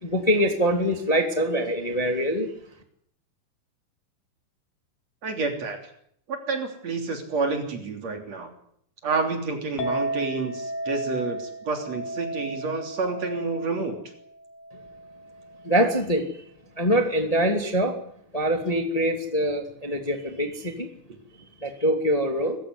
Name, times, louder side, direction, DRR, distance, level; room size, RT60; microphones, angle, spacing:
voice 1, 0.0-2.5 15.6-16.3 16.8-17.9 18.3-20.9 21.6-22.6, equal, 10° left, 4 dB, 2.3 m, -24 dB
voice 2, 5.2-5.8 6.3-8.5 9.0-14.0, right 3 dB, 50° right, 4 dB, 4.3 m, -29 dB
Chink clink, 9.8-16.1, right 1 dB, 80° left, 3.9 m, -34 dB
26.0 x 15.5 x 9.6 m, 0.69 s
omnidirectional pair, 4.0 m